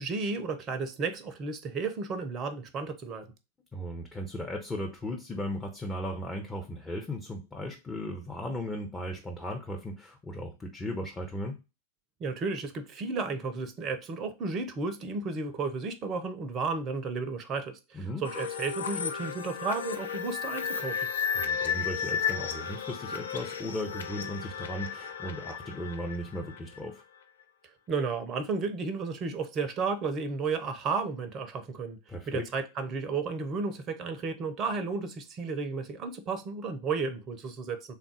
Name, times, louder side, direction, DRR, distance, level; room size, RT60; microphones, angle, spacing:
voice 1, 0.0-3.3 12.2-21.0 27.9-32.0 32.3-37.8, right 4 dB, 30° right, 0.5 m, -33 dB
voice 2, 3.7-11.5 17.9-18.2 21.3-27.0 32.1-32.5, left 1 dB, 15° left, 0.6 m, -36 dB
sound 1, 18.2-26.9, left 7 dB, 65° left, 0.4 m, -34 dB
3.6 x 2.3 x 3.8 m
figure-of-eight pair, 90°, 0 cm